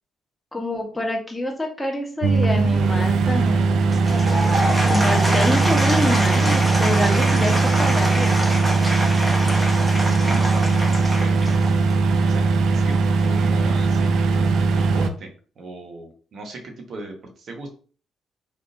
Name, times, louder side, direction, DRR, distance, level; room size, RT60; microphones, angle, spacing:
voice 1, 0.5-3.9 4.9-7.5 7.8-8.3, left 1 dB, 10° left, 0 dB, 1.1 m, -26 dB
sound 1, 2.2-15.1, right 4 dB, 75° right, 0.3 m, -19 dB
Applause / Crowd, 3.8-12.1, right 1 dB, 15° right, 1.0 m, -25 dB
voice 2, 9.8-11.6 12.2-15.3 15.6-17.7, right 2 dB, 55° right, 3 dB, 1.1 m, -37 dB
3.6 x 2.6 x 2.6 m, 0.39 s
cardioid pair, 90°, 0 cm